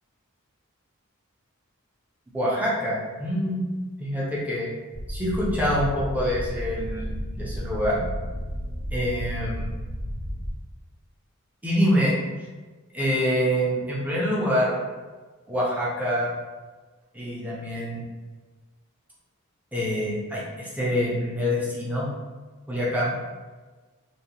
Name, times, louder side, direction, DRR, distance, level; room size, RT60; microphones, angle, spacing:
voice 1, 2.3-3.6 4.0-4.7 5.1-8.0 8.9-9.7 11.6-12.1 12.9-14.8 15.5-16.3 17.1-18.0 19.7-22.1 22.7-23.2, equal, 5° right, -6 dB, 0.5 m, -25 dB
sound 1, 4.9-10.5, equal, 65° right, 0.8 m, -32 dB
2.7 x 2.1 x 2.7 m, 1.3 s
head